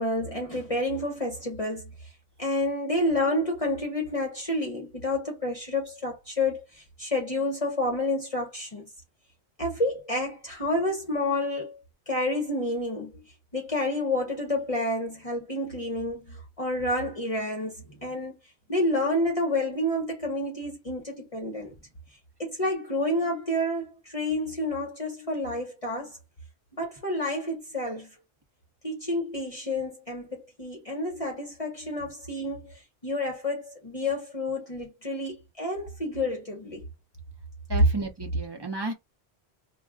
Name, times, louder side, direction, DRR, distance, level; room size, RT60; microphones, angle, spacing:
voice 1, 0.0-2.1 2.4-8.8 9.6-11.8 12.1-13.1 13.5-17.7 18.0-18.4 18.7-21.7 22.4-26.2 26.8-28.1 28.8-36.8, left 1 dB, 35° left, 0.8 m, -29 dB
voice 2, 37.7-38.9, right 3 dB, 25° right, 0.7 m, -33 dB
2.4 x 2.2 x 3.5 m
omnidirectional pair, 1.1 m